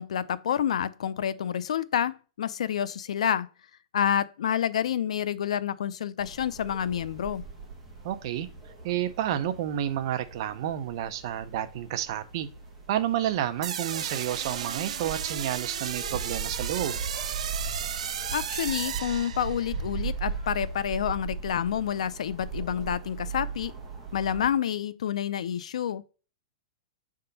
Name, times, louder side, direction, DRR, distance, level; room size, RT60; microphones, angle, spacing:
voice 1, 0.0-3.5 3.9-7.4 18.3-23.7 24.1-26.0, left 9 dB, 90° left, 0.5 m, -28 dB
sound 1, 6.2-24.5, right 5 dB, 5° right, 1.4 m, -39 dB
voice 2, 8.0-8.5 8.8-12.5 12.9-17.0, right 11 dB, 45° right, 0.6 m, -30 dB
sound 2, 13.6-19.8, right 9 dB, 85° right, 0.6 m, -34 dB
6.7 x 3.6 x 3.9 m
supercardioid pair, 165°, 3 cm